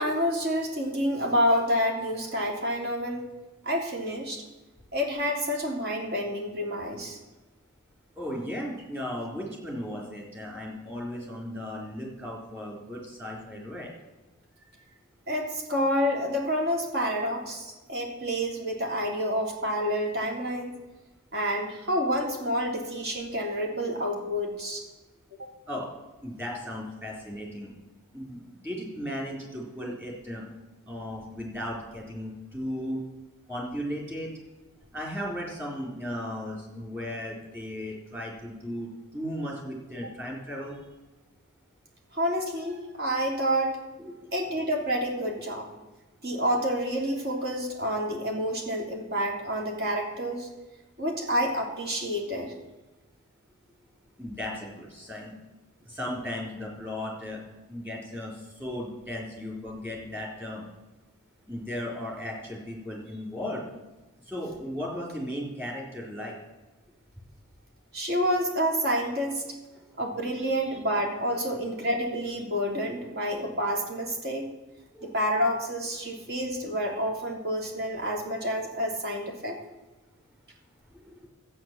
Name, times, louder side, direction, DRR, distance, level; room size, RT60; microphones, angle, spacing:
voice 1, 0.0-3.2 3.6-4.4 4.9-7.2 15.3-20.7 21.3-24.8 25.4-25.5 42.1-43.8 44.3-45.7 46.2-50.5 51.0-52.5 67.9-69.4 70.0-74.5 75.0-79.6, equal, 45° right, 0 dB, 3.1 m, -28 dB
voice 2, 8.2-13.9 25.7-25.9 26.2-27.7 28.1-30.5 30.9-33.0 33.5-34.3 34.9-40.8 44.0-44.6 54.2-55.3 55.9-57.4 57.7-60.6 61.5-63.6 64.3-66.4 69.7-69.9 70.4-70.5 74.9-75.1 76.1-76.2 80.9-81.3, equal, 10° right, -2 dB, 3.9 m, -36 dB
13.0 x 9.0 x 7.6 m, 1.1 s
head